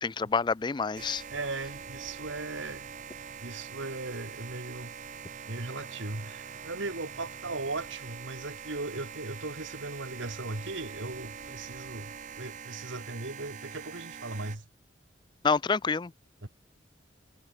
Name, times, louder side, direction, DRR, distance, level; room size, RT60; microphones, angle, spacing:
voice 1, 0.0-1.2 15.4-16.1, left 5 dB, 25° left, 0.4 m, -27 dB
sound 1, 0.9-14.6, right 6 dB, 40° right, 0.7 m, -44 dB
voice 2, 1.3-2.9 3.4-4.9 5.5-14.7 16.4-16.5, right 2 dB, 85° right, 2.3 m, -38 dB
head